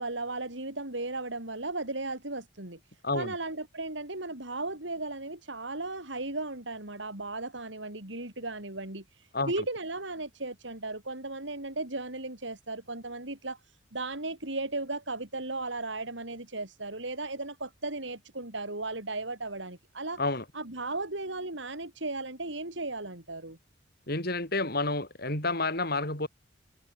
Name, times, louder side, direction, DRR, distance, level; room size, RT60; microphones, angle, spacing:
voice 1, 0.0-2.8 3.1-13.6 13.9-20.2 20.5-23.6, right 2 dB, 75° right, 5.8 m, -36 dB
voice 2, 3.0-3.3 9.3-9.5 20.2-20.4 24.1-26.3, left 2 dB, 55° left, 7.7 m, -29 dB
head